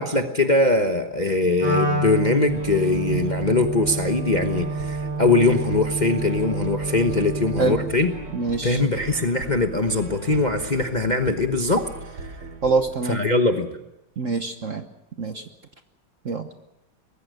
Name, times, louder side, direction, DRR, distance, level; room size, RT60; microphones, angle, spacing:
voice 1, 0.0-8.1 8.6-11.9 12.2-12.3 13.1-13.7, left 2 dB, 30° left, 5 dB, 1.0 m, -21 dB
Wind instrument woodwind instrument, 1.6-7.9, right 2 dB, 70° right, 4.4 m, -28 dB
sound 1, 2.4-12.9, right 2 dB, 90° right, 3.8 m, -38 dB
voice 2, 8.3-8.8 12.6-13.2 14.2-14.8 15.2-15.4 16.2-16.5, right 4 dB, 45° right, 7 dB, 1.1 m, -25 dB
24.0 x 20.5 x 6.6 m, 0.87 s
omnidirectional pair, 2.3 m